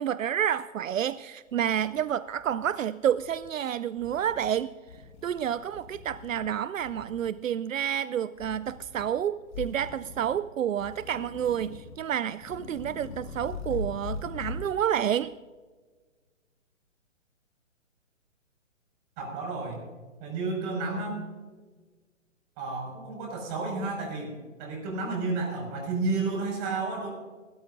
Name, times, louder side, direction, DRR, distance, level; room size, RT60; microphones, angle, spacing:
voice 1, 0.0-4.7 5.2-15.3, right 9 dB, 80° right, 16 dB, 0.5 m, -29 dB
sound 1, 1.1-1.2 1.5-2.7 3.0-3.5 3.9-4.5 4.9-6.5 6.8-7.3 8.3-9.1 9.5-10.4 10.8-12.0 12.4-14.7, left 4 dB, 40° left, 1.7 m, -41 dB
voice 2, 19.2-19.8 20.2-21.2 22.6-24.3 24.6-27.1, right 3 dB, 30° right, 1 dB, 5.5 m, -31 dB
25.5 x 13.0 x 2.5 m, 1.4 s
hypercardioid pair, 135°, 39 cm